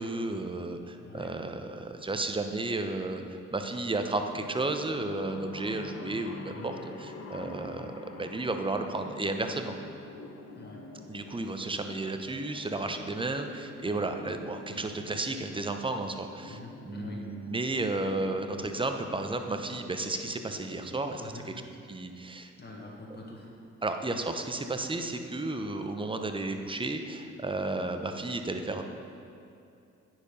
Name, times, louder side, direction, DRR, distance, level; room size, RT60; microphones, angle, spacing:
voice 1, 0.0-9.8 11.1-16.6 16.9-21.3 21.9-22.5 23.8-28.8, right 2 dB, 15° right, 6 dB, 0.8 m, -33 dB
voice 2, 1.0-1.3 6.5-6.7 10.5-10.8 16.5-17.2 21.2-21.5 22.6-23.5, left 2 dB, 30° left, -2 dB, 1.8 m, -45 dB
sound 1, 4.3-21.3, left 3 dB, 45° left, 1.1 m, -46 dB
9.6 x 4.6 x 5.4 m, 2.7 s
hypercardioid pair, 45°, 34 cm